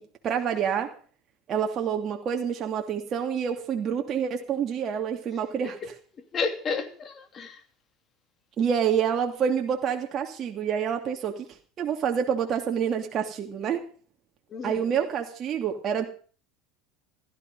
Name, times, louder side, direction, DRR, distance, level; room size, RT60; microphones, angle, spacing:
voice 1, 0.2-1.0 1.5-5.8 8.6-11.5 11.8-13.9 14.6-16.0, right 7 dB, 40° right, 2.7 m, -27 dB
voice 2, 6.1-7.6 14.5-14.9, left 5 dB, 35° left, 3.0 m, -32 dB
16.0 x 13.5 x 5.5 m
hypercardioid pair, 90°, 0 cm